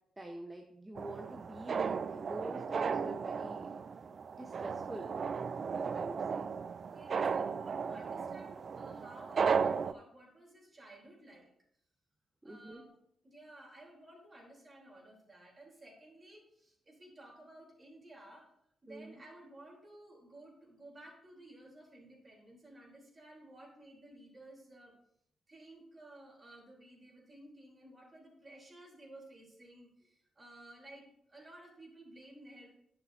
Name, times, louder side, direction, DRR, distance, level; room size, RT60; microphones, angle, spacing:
voice 1, 0.2-3.8 4.0-5.2 5.7-6.5 12.4-12.8 18.9-19.2, right 1 dB, 20° right, 3 dB, 1.1 m, -47 dB
sound 1, 1.0-9.9, right 6 dB, 55° right, 0.3 m, -35 dB
voice 2, 6.9-11.5 12.4-12.9 13.2-18.5 18.8-25.0 25.5-32.7, right 1 dB, 35° right, -1 dB, 3.6 m, -55 dB
10.5 x 7.3 x 2.8 m, 0.72 s
hypercardioid pair, 40°, 0 cm